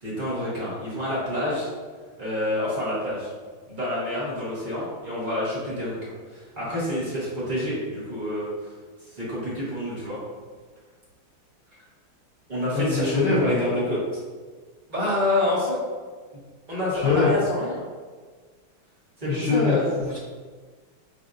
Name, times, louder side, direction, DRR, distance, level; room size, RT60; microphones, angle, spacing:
voice 1, 0.0-1.7 2.2-3.3 3.7-8.5 9.1-10.2 12.5-14.0 14.9-15.8 16.7-17.8 19.2-19.9, left 1 dB, 30° right, -8 dB, 1.0 m, -27 dB
voice 2, 12.7-13.6 16.9-17.3 19.3-20.2, left 5 dB, 75° left, -4 dB, 0.9 m, -23 dB
6.6 x 2.5 x 2.4 m, 1.5 s
omnidirectional pair, 2.3 m